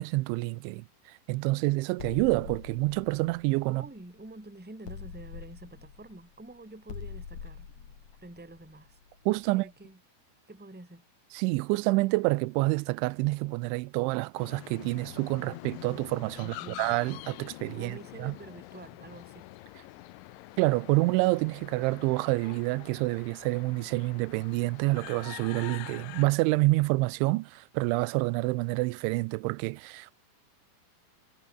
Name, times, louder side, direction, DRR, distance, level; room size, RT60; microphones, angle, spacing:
voice 1, 0.0-3.8 9.3-9.7 11.3-18.3 20.6-30.1, right 22 dB, 90° right, 3.0 m, -28 dB
sound 1, 2.0-4.3 4.9-9.5, left 6 dB, 40° left, 4.1 m, -44 dB
voice 2, 3.7-7.7 8.2-9.0 9.5-10.0 10.5-11.0 16.4-16.8 17.7-19.5, right 2 dB, ahead, 2.8 m, -47 dB
sound 2, 14.4-26.3, left 18 dB, 85° left, 3.2 m, -46 dB
omnidirectional pair, 5.3 m